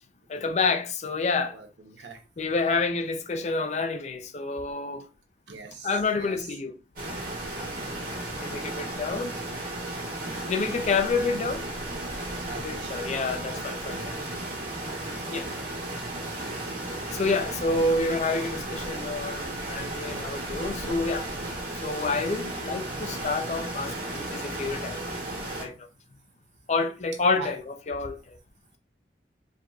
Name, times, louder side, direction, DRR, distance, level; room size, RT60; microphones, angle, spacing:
voice 1, 0.3-1.6 2.4-5.0 5.8-6.8 8.4-9.3 10.5-11.6 12.6-14.0 15.3-15.5 17.1-21.3 21.8-25.1 25.6-25.7 26.7-28.2, left 3 dB, 40° left, 0.4 m, -28 dB
voice 2, 1.5-2.2 5.5-5.9 6.2-6.4 12.5-13.1 13.4-13.7 15.2-15.7 16.3-16.5 22.3-22.5 27.4-27.5, right 4 dB, 85° right, 0.8 m, -43 dB
sound 1, 7.0-25.7, right 1 dB, 50° right, 1.6 m, -34 dB
4.5 x 2.7 x 2.3 m
head